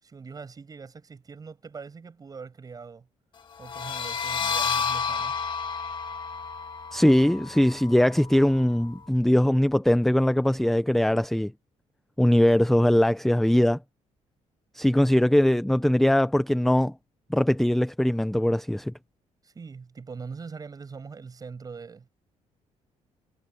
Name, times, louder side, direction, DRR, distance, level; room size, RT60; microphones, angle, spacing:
voice 1, 0.0-3.1 3.6-5.4 19.4-22.1, right 5 dB, 30° right, 7.3 m, -42 dB
sound 1, 3.6-9.0, left 6 dB, 40° left, 1.8 m, -31 dB
voice 2, 6.9-11.5 12.2-13.8 14.7-16.9 17.3-18.9, left 1 dB, ahead, 0.5 m, -21 dB
cardioid pair, 130°, 13 cm